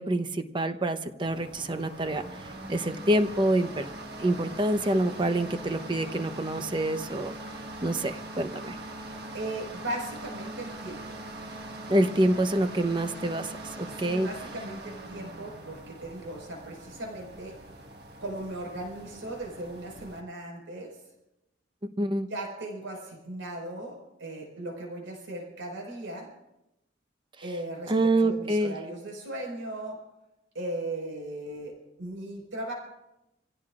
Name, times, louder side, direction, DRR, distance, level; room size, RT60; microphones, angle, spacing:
voice 1, 0.0-2.2 2.7-3.9 4.2-7.3 7.8-8.8 11.9-13.5 13.8-14.3 22.0-22.3 27.9-28.8, right 1 dB, 25° right, 8 dB, 0.9 m, -26 dB
sound 1, 1.2-20.2, right 1 dB, 55° right, 1.6 m, -42 dB
voice 2, 9.3-11.2 13.9-17.5 18.2-20.9 22.3-26.3 27.4-30.0 30.5-31.7 32.0-32.7, right 1 dB, 90° right, 0 dB, 5.1 m, -37 dB
28.0 x 16.5 x 2.5 m, 0.90 s
head